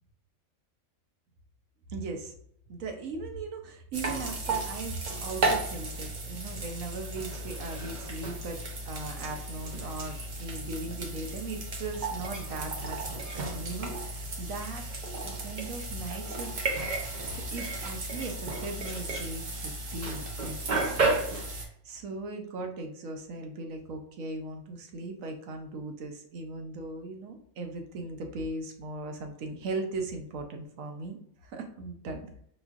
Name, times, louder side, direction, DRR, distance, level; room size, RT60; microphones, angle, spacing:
voice 1, 1.9-2.3 2.7-8.6 8.9-14.9 15.2-16.8 17.2-21.1 21.4-32.3, right 3 dB, 75° right, 3 dB, 1.1 m, -38 dB
sound 1, 3.9-21.6, right 2 dB, 45° right, 0.6 m, -33 dB
4.9 x 3.0 x 2.4 m, 0.68 s
omnidirectional pair, 1.4 m